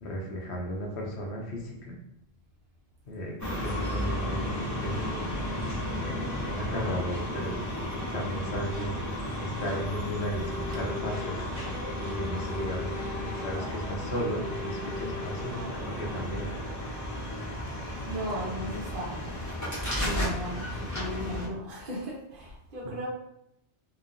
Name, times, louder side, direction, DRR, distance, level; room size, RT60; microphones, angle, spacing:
voice 1, 0.0-1.9 3.1-5.3 6.0-7.5 8.1-9.0 9.4-11.5 12.0-13.0 13.3-16.5, equal, 75° left, -1 dB, 0.9 m, -35 dB
sound 1, 3.4-21.5, left 1 dB, 25° left, 0.5 m, -33 dB
voice 2, 13.4-13.8 15.4-16.0 18.0-19.7 20.0-23.1, equal, 55° right, -4 dB, 0.9 m, -37 dB
2.9 x 2.1 x 2.4 m, 0.80 s
omnidirectional pair, 1.2 m